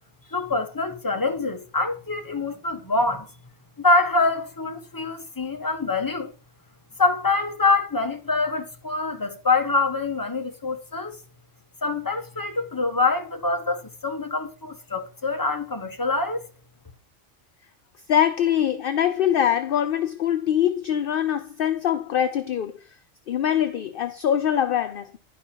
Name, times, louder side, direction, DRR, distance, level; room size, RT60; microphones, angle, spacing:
voice 1, 0.3-3.3 3.8-6.3 7.0-11.2 11.8-16.5, left 3 dB, 15° left, 1.2 m, -25 dB
voice 2, 18.1-22.8 23.3-25.2, left 10 dB, 55° left, 0.7 m, -23 dB
11.0 x 5.0 x 4.4 m
omnidirectional pair, 1.3 m